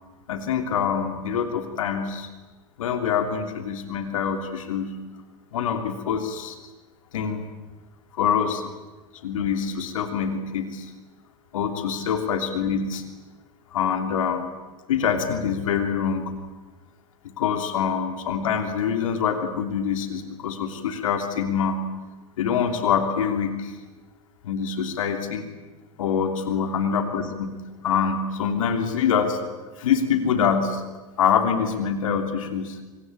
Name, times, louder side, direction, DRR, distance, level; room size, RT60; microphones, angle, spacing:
voice 1, 0.3-2.3 2.8-5.0 5.5-6.6 7.1-7.5 8.1-8.6 9.1-10.9 11.5-13.0 13.7-14.5 14.9-16.3 17.2-21.8 22.4-23.8 24.4-25.5 26.0-27.6 27.8-29.4 29.8-30.8 31.2-32.8, left 7 dB, 70° left, 6 dB, 3.1 m, -25 dB
26.0 x 23.5 x 8.9 m, 1.2 s
figure-of-eight pair, 90°, 18 cm